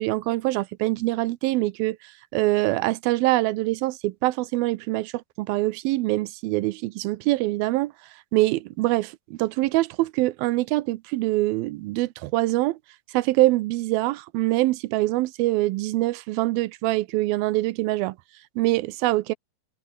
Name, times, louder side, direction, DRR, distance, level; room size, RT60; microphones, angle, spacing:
voice 1, 0.0-2.0 2.3-7.9 8.3-12.8 13.1-18.2 18.6-19.3, right 19 dB, 90° right, 2.5 m, -24 dB
omnidirectional pair, 4.2 m